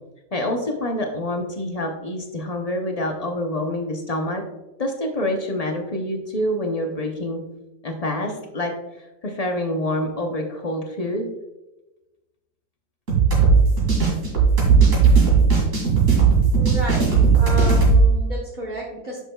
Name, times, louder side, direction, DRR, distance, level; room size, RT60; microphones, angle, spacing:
voice 1, 0.3-4.4 4.8-7.4 7.8-8.7 9.2-11.3, left 1 dB, 40° left, 3 dB, 0.5 m, -26 dB
sound 1, 13.1-18.0, right 5 dB, 50° right, 2.6 m, -16 dB
voice 2, 16.5-17.1 17.4-19.2, right 1 dB, 35° right, -3 dB, 1.0 m, -31 dB
9.6 x 6.0 x 2.3 m, 1.0 s
omnidirectional pair, 1.8 m